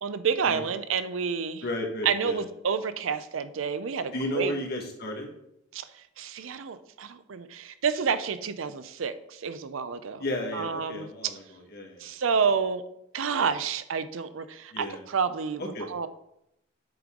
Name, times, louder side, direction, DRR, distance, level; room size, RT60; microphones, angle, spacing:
voice 1, 0.0-1.6 2.0-4.5 5.7-5.8 6.2-10.2 10.5-11.3 12.0-12.8 13.1-15.6 15.9-16.1, right 6 dB, 80° right, 12 dB, 0.5 m, -29 dB
voice 2, 1.6-2.4 4.1-5.3 10.2-12.1 14.7-15.0 15.6-15.9, left 1 dB, 50° left, 1 dB, 1.5 m, -33 dB
7.8 x 5.2 x 3.7 m, 0.78 s
head